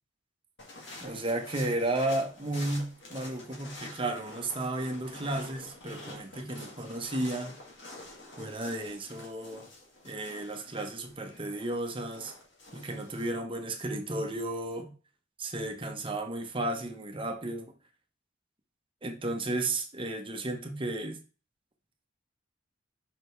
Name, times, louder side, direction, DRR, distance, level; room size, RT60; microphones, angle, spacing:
sound 1, 0.6-13.3, left 2 dB, 65° left, 2.2 m, -48 dB
voice 1, 1.0-7.6 8.4-9.7 10.0-12.3 12.7-14.9 15.4-17.7 19.0-21.2, right 2 dB, 25° right, 1.1 m, -33 dB
6.0 x 4.9 x 3.3 m
head